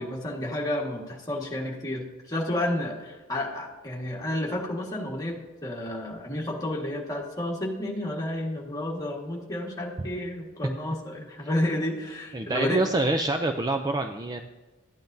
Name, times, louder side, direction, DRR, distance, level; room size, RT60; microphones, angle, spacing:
voice 1, 0.0-12.8, left 1 dB, 15° left, -2 dB, 1.5 m, -31 dB
voice 2, 12.3-14.4, right 2 dB, 20° right, 5 dB, 0.4 m, -26 dB
13.0 x 9.1 x 2.6 m, 1.2 s
head